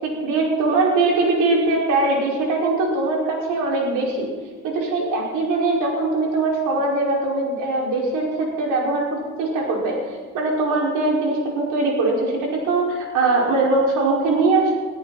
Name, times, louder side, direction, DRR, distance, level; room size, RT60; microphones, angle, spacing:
voice 1, 0.0-4.3 4.6-10.0 10.3-14.8, right 3 dB, 90° right, -2 dB, 5.5 m, -21 dB
23.0 x 13.5 x 4.3 m, 1.6 s
cardioid pair, 90°, 30 cm